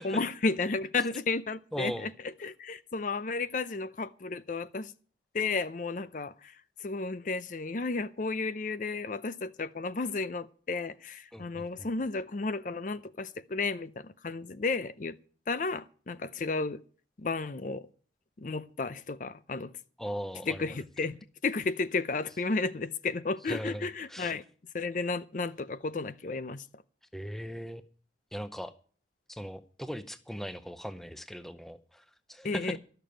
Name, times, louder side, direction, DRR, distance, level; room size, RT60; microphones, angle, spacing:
voice 1, 0.0-2.1 2.4-4.9 5.3-15.2 15.5-16.8 17.2-17.9 18.4-19.7 20.5-21.2 21.4-24.4 24.7-26.7 32.4-32.8, left 3 dB, 45° left, 0.5 m, -33 dB
voice 2, 1.7-2.1 11.3-11.9 20.0-20.8 23.5-24.3 27.1-27.8 28.3-28.7 29.3-32.8, equal, ahead, 0.6 m, -39 dB
13.0 x 6.8 x 8.9 m
head